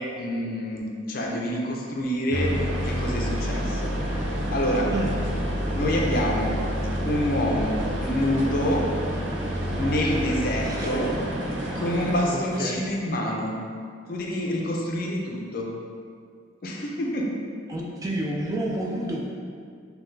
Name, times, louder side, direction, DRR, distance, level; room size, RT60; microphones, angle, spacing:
voice 1, 0.0-2.5 2.8-3.9 4.5-4.9 5.7-6.5 7.0-8.9 9.8-11.2 11.7-13.5 14.1-15.7 16.6-17.3, equal, 50° left, -1 dB, 0.5 m, -27 dB
sound 1, 2.3-12.2, equal, 85° right, 0.6 m, -28 dB
voice 2, 10.6-11.2 12.3-12.8 17.7-19.2, right 1 dB, 20° right, -3 dB, 0.3 m, -30 dB
5.5 x 2.3 x 2.6 m, 2.3 s
head